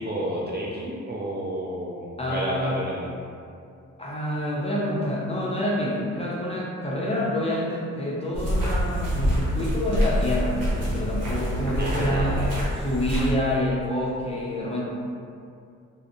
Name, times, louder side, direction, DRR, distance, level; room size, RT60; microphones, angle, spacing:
voice 1, 0.0-3.3 11.8-12.6, right 1 dB, 30° right, -4 dB, 0.4 m, -31 dB
voice 2, 2.2-2.8 4.0-12.3 12.8-14.8, left 1 dB, 20° left, -5 dB, 0.6 m, -27 dB
sound 1, 8.3-13.3, equal, 80° right, 0.8 m, -26 dB
2.4 x 2.1 x 2.6 m, 2.4 s
supercardioid pair, 50°, 34 cm